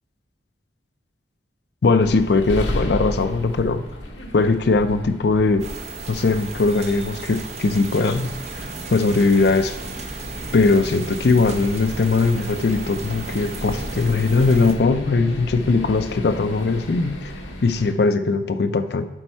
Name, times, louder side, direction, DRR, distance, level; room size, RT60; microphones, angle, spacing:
voice 1, 1.8-3.8 4.3-5.6 6.1-9.8 10.5-17.3 17.6-19.1, left 3 dB, 60° left, 10 dB, 0.5 m, -20 dB
sound 1, 2.0-17.9, left 1 dB, 85° left, 1.1 m, -34 dB
sound 2, 5.6-14.7, right 3 dB, 40° right, 0.9 m, -35 dB
10.5 x 4.5 x 4.4 m, 1.2 s
head